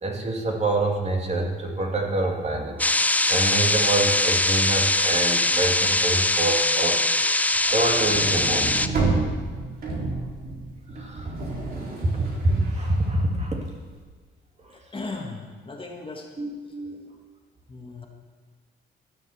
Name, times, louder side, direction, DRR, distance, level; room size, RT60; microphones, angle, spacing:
voice 1, 0.0-2.8 3.3-7.0 7.7-8.9 10.9-11.3 12.0-12.1 12.4-13.6 14.6-14.7 16.4-17.2, right 2 dB, 35° right, 0 dB, 2.3 m, -26 dB
sound 1, 2.8-8.9, left 2 dB, 10° left, 0.5 m, -22 dB
sound 2, 7.5-13.9, right 3 dB, 50° right, 3.1 m, -30 dB
voice 2, 14.7-16.3 17.7-18.1, left 3 dB, 25° left, 1 dB, 1.8 m, -37 dB
15.0 x 7.1 x 7.1 m, 1.5 s
cardioid pair, 90°, 20 cm